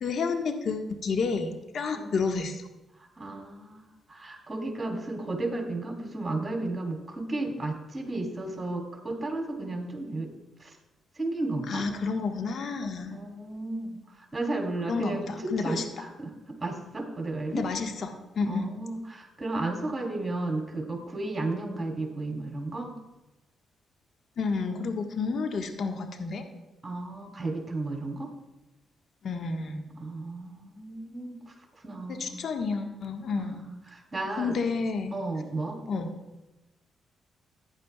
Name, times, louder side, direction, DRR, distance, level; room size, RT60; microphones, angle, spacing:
voice 1, 0.0-2.6 11.7-13.2 14.9-15.8 17.5-18.7 24.4-26.4 29.2-29.9 32.1-33.6 34.4-35.1 35.9-36.1, left 4 dB, 60° left, 4 dB, 1.4 m, -30 dB
voice 2, 2.9-10.3 10.6-10.8 11.1-11.9 13.1-17.6 18.5-22.9 26.8-28.3 30.0-32.4 33.4-34.6 35.1-35.8, right 2 dB, 30° right, 2 dB, 3.4 m, -34 dB
15.0 x 10.5 x 2.3 m, 1.0 s
hypercardioid pair, 50°, 0 cm